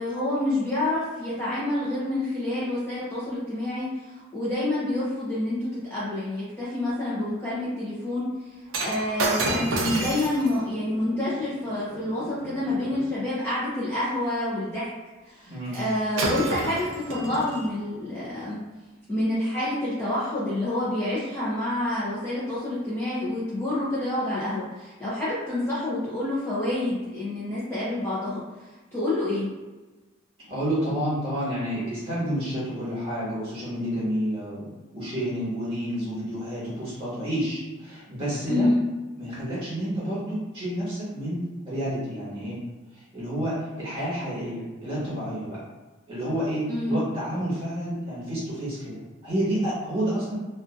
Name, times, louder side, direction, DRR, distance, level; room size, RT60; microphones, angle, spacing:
voice 1, 0.0-8.3 8.8-14.9 15.3-18.6 19.1-28.4 28.9-29.5 38.5-38.8 46.7-47.0, left 1 dB, 10° left, -11 dB, 0.6 m, -28 dB
Shatter, 8.7-13.1 15.7-15.9 16.2-17.7 18.4-18.6, right 2 dB, 70° right, 0.4 m, -31 dB
voice 2, 15.5-15.8 30.5-34.6 34.9-38.7 39.2-42.6 42.9-45.6 46.1-50.4, equal, 25° right, -10 dB, 1.4 m, -29 dB
2.6 x 2.4 x 2.5 m, 1.2 s
head